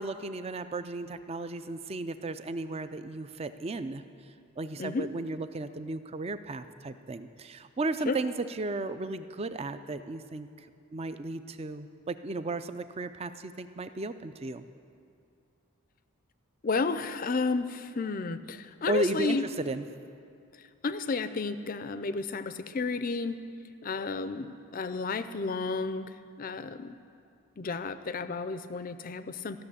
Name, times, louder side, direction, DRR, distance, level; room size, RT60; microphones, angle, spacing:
voice 1, 0.0-4.0 4.6-10.7 10.9-14.6 18.9-19.8, right 2 dB, 25° right, 11 dB, 0.4 m, -34 dB
voice 2, 4.8-5.1 8.1-8.2 16.6-19.5 20.6-23.4 23.8-27.0 27.6-29.6, left 4 dB, 40° left, 12 dB, 0.5 m, -32 dB
14.0 x 6.8 x 9.9 m, 2.4 s
head